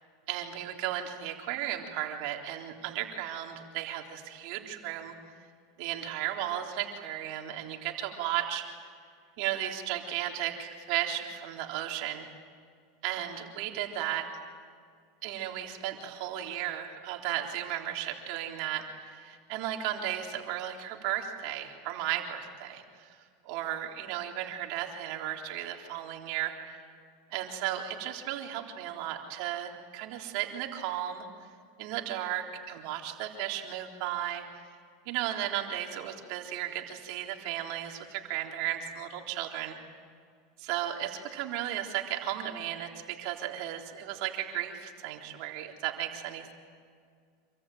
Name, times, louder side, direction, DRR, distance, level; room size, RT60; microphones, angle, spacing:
voice 1, 0.3-5.1 5.8-8.6 9.4-12.3 13.0-14.3 15.2-23.1 23.5-26.8 27.3-31.3 31.8-34.5 35.1-39.8 40.6-46.5, right 12 dB, 60° right, 2 dB, 3.6 m, -35 dB
27.0 x 24.0 x 9.2 m, 2.1 s
supercardioid pair, 125°, 0 cm